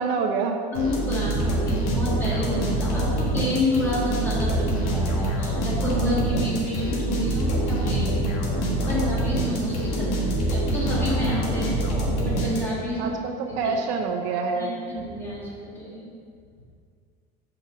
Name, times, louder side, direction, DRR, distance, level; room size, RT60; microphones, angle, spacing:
voice 1, 0.0-0.6 3.1-3.2 10.2-10.3 13.0-14.7, right 4 dB, 65° right, 4 dB, 0.6 m, -27 dB
sound 1, 0.7-13.0, right 1 dB, 80° left, 1.6 m, -25 dB
voice 2, 0.7-8.3 8.9-13.1 13.6-13.7 14.5-16.1, left 1 dB, 10° left, -7 dB, 1.7 m, -29 dB
5.3 x 4.6 x 6.1 m, 2.2 s
cardioid pair, 165°, 19 cm